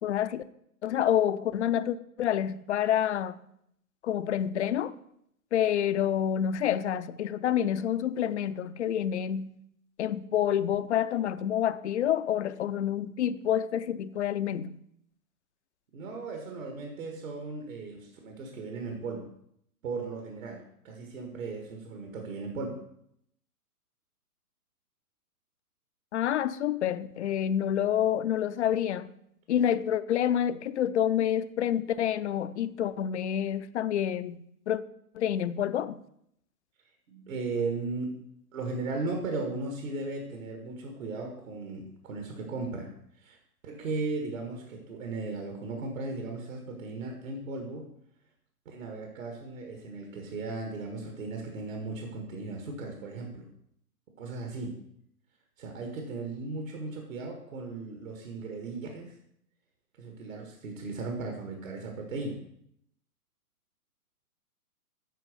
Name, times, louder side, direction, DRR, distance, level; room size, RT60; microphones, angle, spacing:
voice 1, 0.0-0.4 0.8-3.3 4.0-4.9 5.5-9.5 10.0-14.8 26.1-29.1 29.5-34.8 35.1-36.0, left 10 dB, 50° left, 0.5 m, -28 dB
voice 2, 15.9-19.3 19.8-22.8 37.1-38.1 38.5-42.9 43.2-43.4 43.6-47.9 48.7-53.5 54.2-54.8 55.6-59.1 60.0-62.4, right 3 dB, 60° right, 1.8 m, -36 dB
9.1 x 5.0 x 6.6 m
hypercardioid pair, 135°, 46 cm